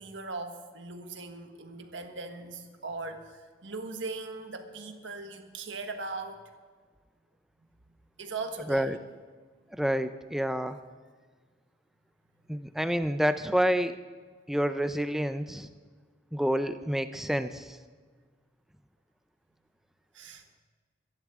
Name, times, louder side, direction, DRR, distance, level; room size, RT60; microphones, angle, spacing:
voice 1, 0.0-6.4 8.2-8.9 12.6-12.7 20.1-20.4, right 3 dB, 80° right, 5 dB, 1.4 m, -39 dB
voice 2, 9.7-10.8 12.5-14.0 14.5-15.7 16.3-17.8, equal, ahead, 10 dB, 0.4 m, -28 dB
22.5 x 10.5 x 3.6 m, 1.5 s
head